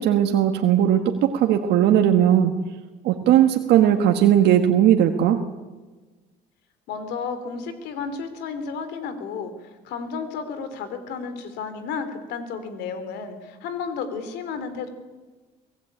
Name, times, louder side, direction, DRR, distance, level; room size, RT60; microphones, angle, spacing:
voice 1, 0.0-2.5 3.0-5.4, right 10 dB, 80° right, 4 dB, 1.6 m, -18 dB
voice 2, 6.9-14.9, left 5 dB, 85° left, 10 dB, 3.4 m, -32 dB
24.5 x 17.0 x 8.9 m, 1.3 s
cardioid pair, 110°, 17 cm